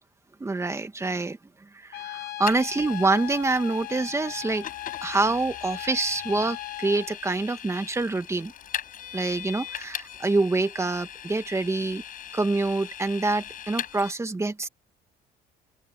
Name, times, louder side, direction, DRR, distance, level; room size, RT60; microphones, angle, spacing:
voice 1, 0.4-4.7 5.0-8.5 9.1-12.0 12.3-14.7, right 3 dB, 15° right, 2.1 m, -26 dB
Trumpet, 1.9-7.1, left 15 dB, 75° left, 5.8 m, -38 dB
Vehicle, 2.5-14.1, left 10 dB, 55° left, 6.3 m, -40 dB
open air
cardioid pair, 110°, 17 cm